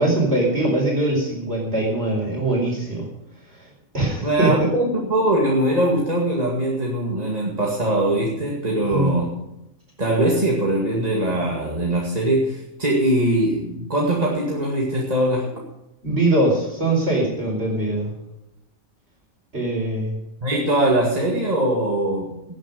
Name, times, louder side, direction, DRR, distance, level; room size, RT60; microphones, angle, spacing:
voice 1, 0.0-3.1 3.9-4.7 8.9-9.1 16.0-18.1 19.5-20.2, right 2 dB, 50° right, -2 dB, 4.7 m, -22 dB
voice 2, 4.2-9.3 10.0-15.5 20.4-22.3, right 1 dB, 30° right, -2 dB, 2.3 m, -21 dB
18.0 x 9.9 x 5.3 m, 0.90 s
omnidirectional pair, 1.4 m